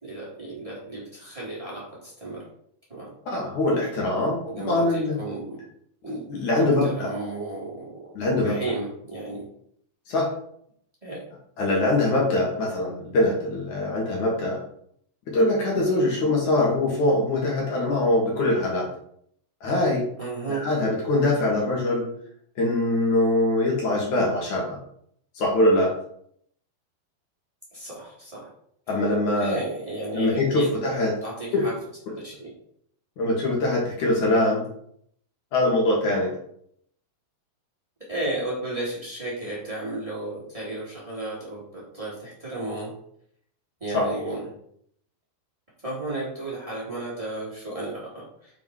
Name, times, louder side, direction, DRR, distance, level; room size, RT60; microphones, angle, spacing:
voice 1, 0.0-2.4 2.9-3.1 4.5-5.6 6.0-6.2 6.6-8.1 8.4-9.4 11.0-11.2 20.2-20.6 27.7-28.5 29.3-30.8 31.2-31.7 32.1-32.5 38.1-42.9 43.8-44.4 45.8-48.5, right 2 dB, 10° right, -7 dB, 2.1 m, -33 dB
voice 2, 3.3-4.4 4.7-5.2 6.0-7.1 8.1-8.6 10.1-10.3 11.6-14.6 15.3-18.9 19.6-20.0 20.5-22.1 22.6-24.8 25.4-25.9 28.9-29.5 30.1-31.1 31.5-31.6 33.2-34.6 35.5-36.3 43.9-44.0, left 1 dB, 50° left, -3 dB, 2.6 m, -23 dB
7.7 x 5.2 x 4.9 m, 0.68 s
omnidirectional pair, 5.5 m